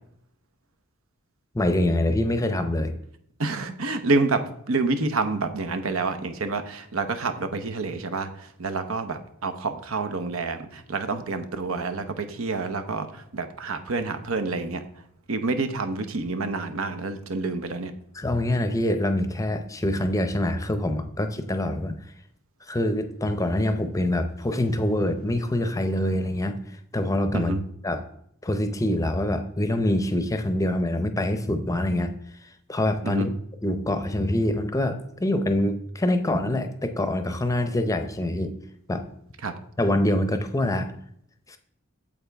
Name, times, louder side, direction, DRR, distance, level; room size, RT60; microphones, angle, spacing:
voice 1, 1.5-2.9 18.2-21.9 22.7-26.6 26.9-27.5 27.8-28.0 28.4-32.1 32.7-33.3 33.6-38.5 38.9-39.0 39.8-40.9 41.5-41.6, left 1 dB, 15° left, 8 dB, 0.6 m, -25 dB
voice 2, 3.4-14.8 15.3-17.9 27.3-27.6 33.0-33.3 39.4-39.5, right 3 dB, 75° right, 9 dB, 0.8 m, -28 dB
8.6 x 7.4 x 3.5 m, 0.71 s
head